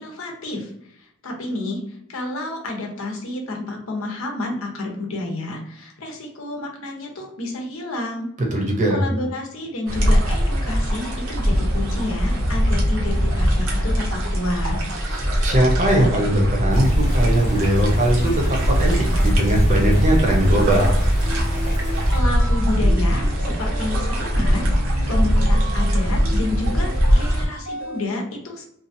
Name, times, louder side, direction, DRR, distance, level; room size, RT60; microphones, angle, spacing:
voice 1, 0.0-8.3 8.9-14.8 22.1-24.7 25.1-28.6, left 2 dB, 70° left, 1 dB, 0.8 m, -30 dB
voice 2, 8.5-9.0 15.1-18.3 18.7-18.9 19.2-20.9, right 1 dB, 35° right, 0 dB, 0.8 m, -20 dB
sound 1, 9.9-27.4, equal, 65° right, 0.8 m, -21 dB
sound 2, 16.7-22.2, equal, 30° left, 0.9 m, -23 dB
sound 3, 21.2-28.1, equal, 85° right, 1.2 m, -36 dB
2.7 x 2.5 x 2.6 m, 0.73 s
head